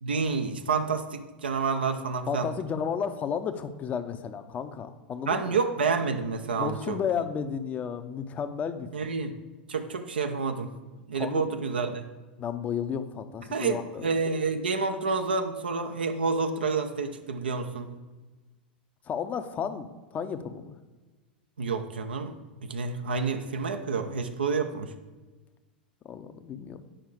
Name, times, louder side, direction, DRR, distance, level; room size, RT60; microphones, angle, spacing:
voice 1, 0.0-2.5 5.2-7.0 8.9-9.3 9.7-10.7 11.1-12.1 13.5-17.9 21.6-22.4 22.6-24.9, right 4 dB, 75° right, 6 dB, 0.6 m, -29 dB
voice 2, 2.3-5.6 6.6-8.9 11.2-11.5 12.4-14.1 19.1-20.8 26.0-26.8, left 7 dB, 30° left, 9 dB, 0.6 m, -33 dB
8.7 x 5.5 x 4.9 m, 1.2 s
figure-of-eight pair, 90°, 5 cm